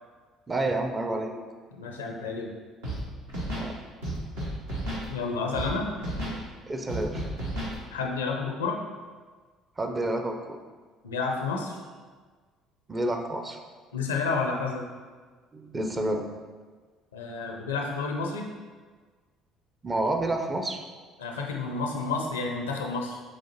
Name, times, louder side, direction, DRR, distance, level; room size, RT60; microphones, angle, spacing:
voice 1, 0.5-1.4 3.5-3.8 6.7-7.2 9.8-10.6 12.9-13.6 15.5-16.2 19.8-20.8, right 2 dB, 25° right, 4 dB, 0.5 m, -29 dB
voice 2, 1.8-2.5 5.1-5.9 7.9-8.8 11.0-11.8 13.9-14.8 17.1-18.5 21.2-23.2, left 4 dB, 80° left, 1 dB, 0.5 m, -30 dB
Scratching (performance technique), 2.8-3.0 3.3-3.7 4.0-5.0 5.5-5.7 6.0-6.4 6.9-7.7, right 1 dB, 75° right, 1.2 m, -32 dB
7.4 x 2.5 x 2.8 m, 1.5 s
figure-of-eight pair, 55°, 0 cm